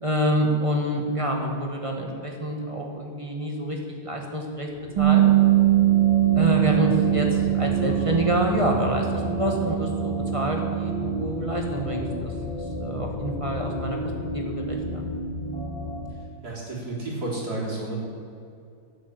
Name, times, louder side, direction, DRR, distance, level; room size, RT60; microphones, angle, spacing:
voice 1, 0.0-4.7 5.0-5.2 6.3-14.0 14.3-15.0, equal, 15° right, 0 dB, 1.6 m, -27 dB
sound 1, 4.5-16.0, left 1 dB, 30° left, 3.6 m, -32 dB
Bass guitar, 5.0-11.2, right 15 dB, 80° right, 2.2 m, -22 dB
voice 2, 6.8-7.1 16.4-18.0, right 2 dB, 50° right, -5 dB, 4.3 m, -32 dB
11.5 x 10.0 x 8.1 m, 2.4 s
omnidirectional pair, 2.2 m